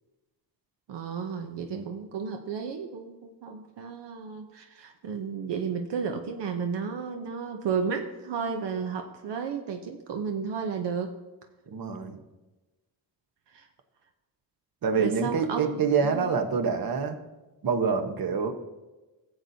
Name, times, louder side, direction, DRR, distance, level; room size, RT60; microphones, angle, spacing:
voice 1, 0.9-11.2 13.5-13.7 15.0-16.3, right 6 dB, 85° right, 5 dB, 0.8 m, -33 dB
voice 2, 11.7-12.2 14.8-17.2 17.6-18.5, right 5 dB, 60° right, 6 dB, 1.1 m, -26 dB
16.5 x 7.9 x 2.7 m, 1.1 s
wide cardioid pair, 115°, 41 cm